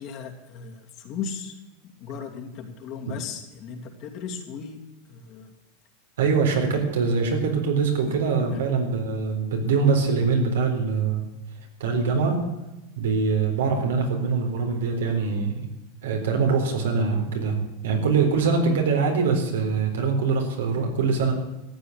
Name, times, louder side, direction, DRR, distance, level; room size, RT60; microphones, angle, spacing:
voice 1, 0.0-1.6 1.8-4.8 5.1-5.5 8.5-8.6, left 6 dB, 45° left, 2 dB, 2.7 m, -36 dB
voice 2, 6.2-11.3 11.8-12.4 13.0-15.7 16.0-17.6 17.8-21.3, right 5 dB, 90° right, 2 dB, 4.1 m, -23 dB
14.0 x 8.5 x 8.0 m, 1.0 s
supercardioid pair, 135°, 0 cm